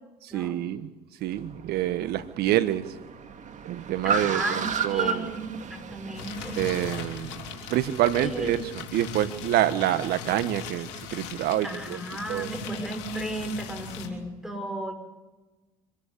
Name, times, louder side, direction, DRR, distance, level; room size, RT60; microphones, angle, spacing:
voice 1, 0.2-0.9 1.2-2.8 3.6-5.3 6.6-7.4 7.7-12.0 12.3-12.5, right 13 dB, 65° right, 13 dB, 1.4 m, -27 dB
Car, 1.3-8.7, right 5 dB, 45° right, 2.3 m, -34 dB
voice 2, 4.0-6.6 8.2-8.5 11.6-14.9, right 1 dB, 5° right, 5 dB, 5.9 m, -34 dB
sound 1, 6.1-14.1, left 8 dB, 80° left, 3.4 m, -39 dB
25.0 x 13.5 x 8.5 m, 1.1 s
hypercardioid pair, 70°, 17 cm